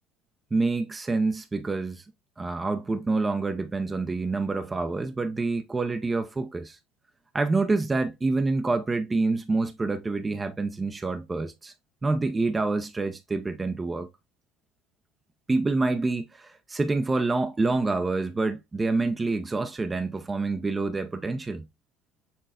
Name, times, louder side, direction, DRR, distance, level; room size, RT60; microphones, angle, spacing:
voice 1, 0.5-2.0 2.4-6.8 7.3-11.7 12.0-14.1 15.5-21.6, right 3 dB, 20° right, 0.6 m, -27 dB
6.8 x 3.1 x 2.4 m
supercardioid pair, 85°, 0 cm